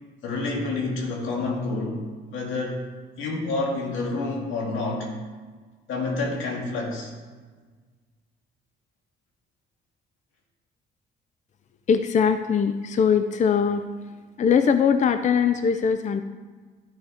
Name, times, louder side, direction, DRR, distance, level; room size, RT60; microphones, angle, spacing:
voice 1, 0.2-2.0 2.3-2.8 3.2-5.1 5.9-7.1, left 3 dB, 90° left, -1 dB, 2.2 m, -28 dB
voice 2, 11.9-13.8 14.4-16.2, left 6 dB, 40° left, 9 dB, 0.5 m, -21 dB
12.0 x 4.8 x 4.9 m, 1.4 s
cardioid pair, 90°, 20 cm